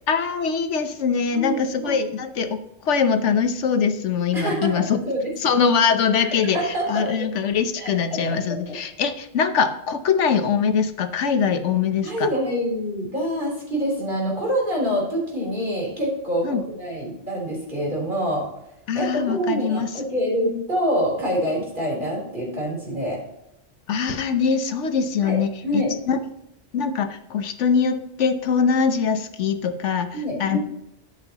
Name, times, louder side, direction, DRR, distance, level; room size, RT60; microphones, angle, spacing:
voice 1, 0.1-2.6 2.8-5.1 5.4-6.6 6.9-12.3 16.4-16.6 18.9-19.9 20.4-20.6 23.9-26.2 26.7-30.6, left 6 dB, 85° left, 9 dB, 1.2 m, -22 dB
voice 2, 1.3-2.0 4.3-5.3 6.2-7.3 7.8-8.2 8.5-8.8 12.0-18.5 18.9-23.2 25.2-25.4 25.6-25.9 30.1-30.6, equal, 45° right, -3 dB, 3.8 m, -26 dB
11.0 x 8.0 x 2.9 m, 0.83 s
omnidirectional pair, 1.2 m